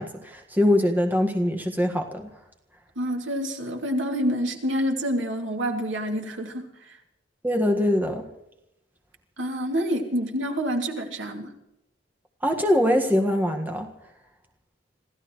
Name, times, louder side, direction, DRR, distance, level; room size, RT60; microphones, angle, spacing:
voice 1, 0.0-2.3 7.4-8.2 12.4-13.9, left 1 dB, 10° right, 3 dB, 1.6 m, -23 dB
voice 2, 3.0-7.0 9.4-11.5, equal, 80° right, 3 dB, 2.6 m, -27 dB
27.0 x 15.5 x 3.1 m, 0.84 s
head